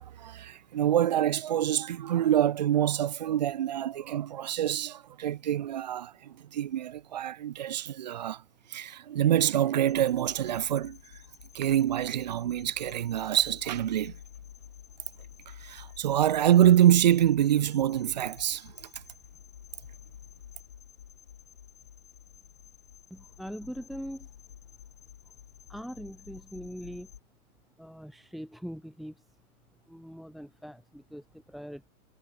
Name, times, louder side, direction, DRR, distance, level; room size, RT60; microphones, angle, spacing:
voice 1, 0.0-8.4 8.7-11.0 11.5-14.1 15.6-18.7, right 11 dB, 30° right, 1.0 m, -26 dB
sound 1, 9.9-27.2, left 8 dB, 70° left, 2.6 m, -51 dB
voice 2, 23.1-24.3 25.7-27.1 27.8-29.3 29.9-31.9, equal, ahead, 2.7 m, -42 dB
hypercardioid pair, 170°, 45 cm